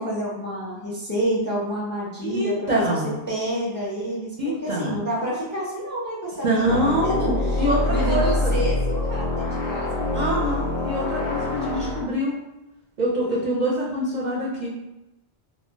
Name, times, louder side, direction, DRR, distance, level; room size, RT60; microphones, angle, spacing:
voice 1, 0.0-3.0 3.3-7.6 7.9-10.2, equal, 15° left, -6 dB, 0.5 m, -29 dB
voice 2, 2.2-3.2 4.4-5.0 6.4-8.6 10.1-12.4 13.0-14.7, equal, 50° right, -6 dB, 0.6 m, -25 dB
sound 1, 6.6-12.0, left 2 dB, 60° left, 0.6 m, -25 dB
2.1 x 2.0 x 3.8 m, 0.96 s
omnidirectional pair, 1.1 m